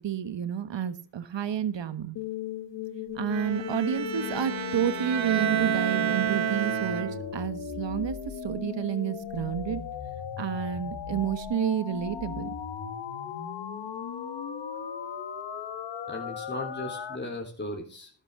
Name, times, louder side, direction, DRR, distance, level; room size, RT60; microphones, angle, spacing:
voice 1, 0.0-2.2 3.1-9.8 10.4-12.5, right 9 dB, 70° right, 13 dB, 1.4 m, -30 dB
sound 1, 2.2-17.2, left 7 dB, 70° left, 1.7 m, -37 dB
Bowed string instrument, 3.3-7.5, right 9 dB, 85° right, 1.5 m, -30 dB
voice 2, 16.1-18.1, left 1 dB, 25° left, 0 dB, 3.4 m, -36 dB
12.5 x 12.0 x 3.7 m, 0.36 s
cardioid pair, 65°, 46 cm